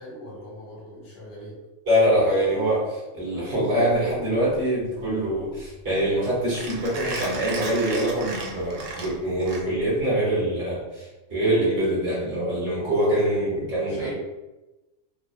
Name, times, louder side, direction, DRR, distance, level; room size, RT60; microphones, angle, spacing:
voice 1, 0.0-1.6 13.9-14.1, left 1 dB, 70° left, -5 dB, 1.2 m, -41 dB
voice 2, 1.9-14.1, right 1 dB, 25° right, -9 dB, 1.2 m, -24 dB
Mechanisms, 3.9-10.0, right 2 dB, 80° right, 0.9 m, -36 dB
2.4 x 2.4 x 2.2 m, 1.0 s
omnidirectional pair, 1.3 m